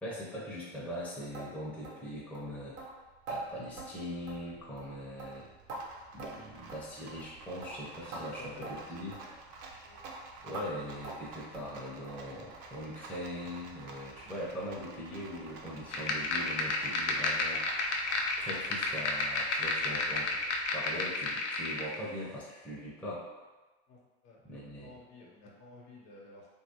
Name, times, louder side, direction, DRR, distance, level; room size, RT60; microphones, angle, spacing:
voice 1, 0.0-2.8 3.3-5.5 6.1-9.2 10.4-18.0 18.4-20.3 20.7-23.3 24.4-25.0, equal, 5° left, -6 dB, 0.6 m, -41 dB
sound 1, 1.3-1.5 1.8-2.0 2.3-2.5 2.8-2.9 3.3-3.4 3.8-3.9 4.3-4.5 4.8-4.9 5.2-5.8 6.2-6.4 6.7-6.8 7.2-7.3 7.6-7.8 8.1-8.2 8.6-8.7 9.1-9.3 9.6-9.8 10.0-10.2 10.5-10.7 11.0-11.2 11.5-11.7 12.0-12.2 12.5-12.7 13.0-13.1 13.5-13.6, right 3 dB, 85° right, 1.1 m, -43 dB
Rattle, 2.4-20.7, right 3 dB, 50° right, 0.6 m, -51 dB
voice 2, 8.1-9.4 9.8-10.0 23.9-24.0 24.2-26.5, left 2 dB, 50° left, -2 dB, 1.0 m, -52 dB
sound 2, 15.9-22.0, left 3 dB, 90° left, 0.5 m, -32 dB
3.0 x 2.7 x 2.8 m, 1.2 s
hypercardioid pair, 95°, 34 cm